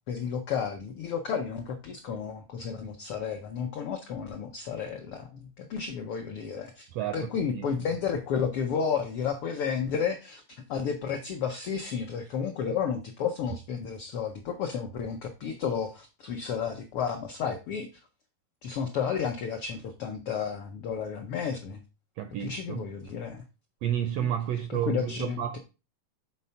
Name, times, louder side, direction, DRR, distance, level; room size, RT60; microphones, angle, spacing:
voice 1, 0.1-6.9 7.1-10.4 10.7-17.9 18.6-21.8 22.4-23.4 24.2-24.3 24.7-25.6, left 6 dB, 85° left, 1.2 m, -32 dB
voice 2, 6.9-7.7 22.2-22.8 23.8-25.6, right 10 dB, 85° right, 1.4 m, -31 dB
6.9 x 4.2 x 5.6 m
omnidirectional pair, 3.6 m